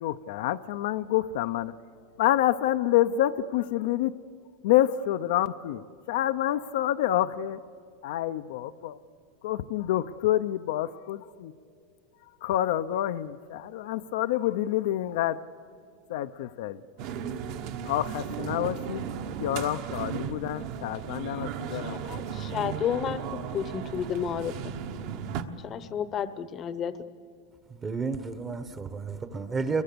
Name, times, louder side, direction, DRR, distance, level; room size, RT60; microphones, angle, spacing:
voice 1, 0.0-1.7 2.2-4.1 4.6-5.8 6.1-7.6 8.0-9.0 9.4-11.5 12.4-15.4 16.1-16.8 17.9-19.0 19.4-22.0, left 13 dB, 70° left, 10 dB, 0.5 m, -27 dB
sound 1, 17.0-25.4, right 8 dB, 55° right, 1.2 m, -35 dB
voice 2, 21.9-24.7 25.6-26.9, left 8 dB, 30° left, 14 dB, 0.8 m, -32 dB
voice 3, 27.8-29.8, right 4 dB, 20° right, 11 dB, 0.9 m, -31 dB
29.5 x 22.5 x 6.9 m, 2.2 s
supercardioid pair, 155°, 0 cm